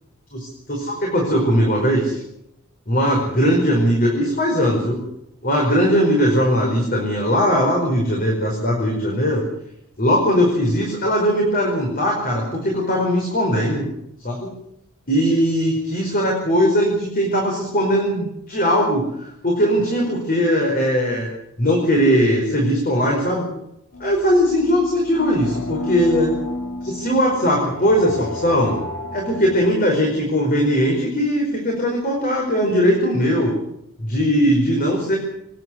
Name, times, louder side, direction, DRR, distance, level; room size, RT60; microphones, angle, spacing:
voice 1, 0.3-2.2 2.9-5.1 5.4-9.4 10.0-13.9 14.2-14.6 15.1-19.1 19.4-21.3 21.6-23.5 24.0-26.3 26.8-28.8 29.1-33.5 34.0-35.2, equal, 45° left, -1 dB, 5.1 m, -19 dB
sound 1, 23.9-29.7, left 2 dB, 70° left, 5.4 m, -31 dB
26.0 x 11.0 x 9.7 m, 0.81 s
head